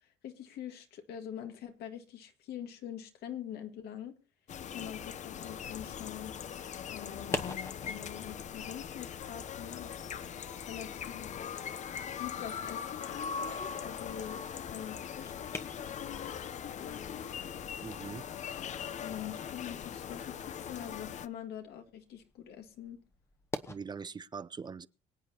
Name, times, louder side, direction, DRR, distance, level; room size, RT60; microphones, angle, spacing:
voice 1, 0.0-4.2 4.7-6.3 6.9-7.4 7.8-9.9 10.7-11.3 12.2-17.4 19.0-23.0, left 9 dB, 75° left, 1.8 m, -44 dB
sound 1, 4.5-21.3, left 8 dB, 45° left, 0.7 m, -41 dB
voice 2, 17.8-18.2 23.7-24.9, right 5 dB, 25° right, 0.5 m, -42 dB
sound 2, 21.4-23.8, left 2 dB, 15° left, 1.0 m, -48 dB
24.0 x 8.3 x 2.8 m
cardioid pair, 110°, 17 cm